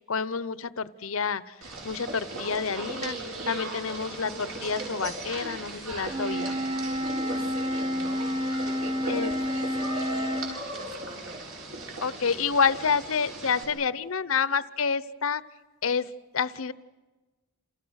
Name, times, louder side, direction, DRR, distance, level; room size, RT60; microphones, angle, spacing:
voice 1, 0.0-1.4 1.8-3.2 3.5-6.6 9.1-9.3 12.0-15.4 15.8-16.1 16.3-16.7, left 6 dB, 65° left, 17 dB, 0.8 m, -28 dB
sound 1, 1.6-13.6, right 2 dB, 70° right, 7.7 m, -38 dB
Wind instrument woodwind instrument, 6.1-10.5, equal, 20° right, 1.2 m, -29 dB
voice 2, 7.0-11.5, right 1 dB, 35° right, 5 dB, 6.1 m, -42 dB
29.0 x 28.5 x 6.5 m, 1.3 s
head